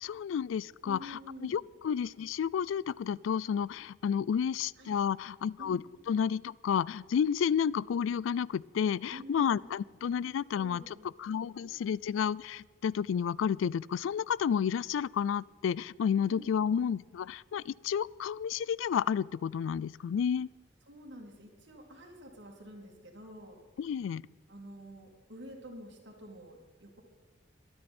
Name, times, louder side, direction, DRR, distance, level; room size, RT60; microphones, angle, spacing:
voice 1, 0.0-20.5 23.8-24.2, left 7 dB, 85° left, 24 dB, 0.3 m, -31 dB
voice 2, 0.8-1.6 4.8-4.9 5.6-5.8 9.1-9.7 10.5-11.1 11.5-11.8 16.3-16.7 20.9-23.6 24.5-27.0, equal, 70° right, 0 dB, 2.6 m, -49 dB
23.5 x 9.7 x 4.4 m, 1.5 s
head